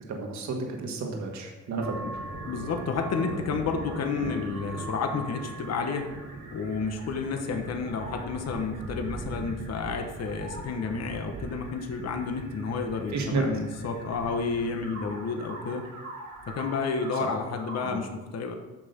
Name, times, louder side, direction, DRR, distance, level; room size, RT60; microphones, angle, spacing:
voice 1, 0.1-1.9 13.1-13.4 17.2-17.3 17.8-18.0, right 4 dB, 65° right, 1 dB, 1.8 m, -31 dB
sound 1, 1.8-17.9, right 2 dB, 90° right, 1.9 m, -40 dB
voice 2, 2.5-6.1 6.5-15.8 16.5-18.5, left 5 dB, 55° left, 5 dB, 1.2 m, -31 dB
8.6 x 6.5 x 5.2 m, 1.2 s
cardioid pair, 90°, 30 cm